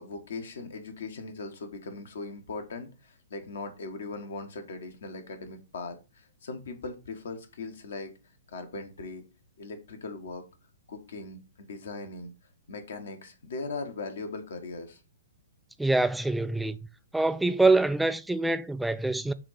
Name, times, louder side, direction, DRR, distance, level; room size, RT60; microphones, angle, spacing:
voice 1, 0.0-8.1 8.5-9.2 9.6-10.4 10.9-12.3 12.7-15.0, left 3 dB, 60° left, 1.4 m, -39 dB
voice 2, 15.8-16.8 17.1-19.3, right 2 dB, 5° right, 0.3 m, -25 dB
6.7 x 2.8 x 5.6 m
figure-of-eight pair, 115°, 0 cm